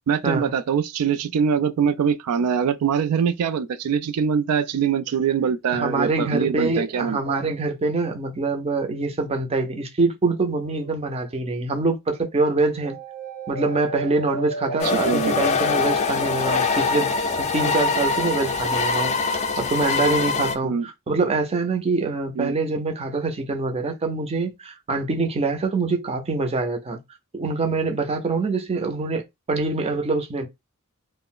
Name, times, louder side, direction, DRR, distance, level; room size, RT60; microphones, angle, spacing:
voice 1, 0.1-7.2 14.8-15.4 20.6-20.9 22.4-22.5, right 7 dB, 85° right, 0.3 m, -23 dB
voice 2, 5.7-13.0 13.5-17.1 17.4-27.0 27.3-30.5, right 3 dB, 25° right, 0.5 m, -25 dB
sound 1, 10.6-11.4 12.8-16.6, right 2 dB, 70° right, 0.9 m, -34 dB
sound 2, 14.8-20.6, left 4 dB, 30° left, 0.4 m, -23 dB
2.3 x 2.0 x 3.6 m
head